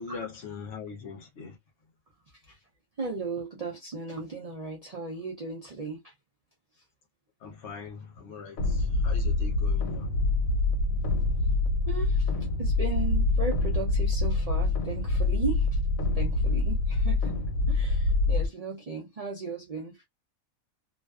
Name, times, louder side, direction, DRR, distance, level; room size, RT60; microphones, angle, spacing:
voice 1, 0.0-1.6 7.4-10.1, left 5 dB, 60° left, 0.9 m, -41 dB
voice 2, 3.0-6.1 11.8-12.3 12.6-15.8 16.1-17.4 17.7-20.0, right 4 dB, 75° right, 0.3 m, -36 dB
sound 1, 8.6-18.5, left 3 dB, 90° left, 1.1 m, -26 dB
2.5 x 2.3 x 2.3 m
omnidirectional pair, 1.4 m